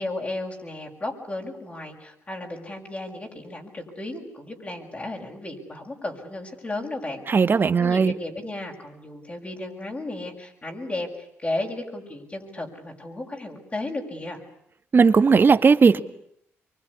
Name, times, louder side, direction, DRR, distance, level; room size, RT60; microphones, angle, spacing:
voice 1, 0.0-7.2 7.8-14.4, left 2 dB, 30° left, 0 dB, 6.7 m, -34 dB
voice 2, 7.3-8.1 14.9-16.0, right 5 dB, 45° right, 11 dB, 1.7 m, -17 dB
24.5 x 24.5 x 9.9 m, 0.72 s
cardioid pair, 70°, 5 cm